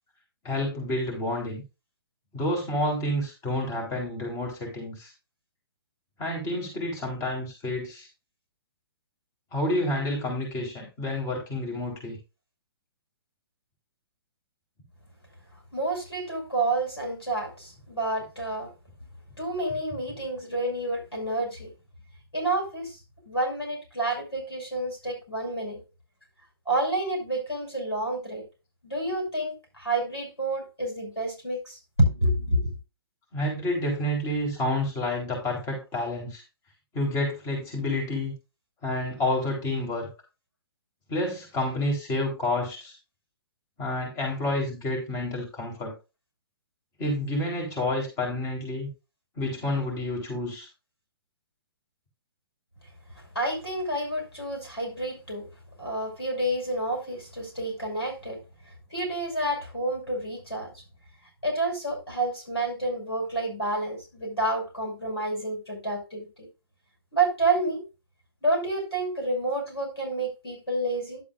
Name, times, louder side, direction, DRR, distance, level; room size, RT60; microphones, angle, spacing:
voice 1, 0.4-1.6 2.3-5.1 6.2-8.1 9.5-12.2 33.3-36.4 36.9-38.3 38.8-40.1 41.1-43.0 43.8-45.9 47.0-48.9 49.4-50.7, left 1 dB, 25° left, 4.0 m, -29 dB
voice 2, 15.7-18.7 19.4-21.7 22.3-23.0 23.2-25.8 26.7-28.4 28.8-32.7 53.3-55.5 55.8-58.4 58.9-60.7 61.4-66.3 67.1-67.8 68.4-71.2, right 2 dB, 85° left, 6.1 m, -29 dB
11.0 x 8.4 x 2.6 m
figure-of-eight pair, 120°, 13 cm